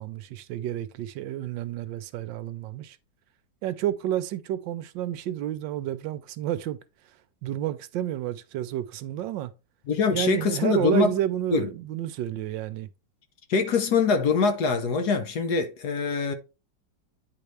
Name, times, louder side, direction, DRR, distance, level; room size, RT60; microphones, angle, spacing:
voice 1, 0.0-3.0 3.6-6.8 7.4-9.5 10.1-12.9, right 12 dB, 80° right, 1.3 m, -30 dB
voice 2, 9.9-11.1 11.5-11.7 13.5-16.3, left 5 dB, 60° left, 1.4 m, -24 dB
9.4 x 3.9 x 3.3 m
omnidirectional pair, 2.1 m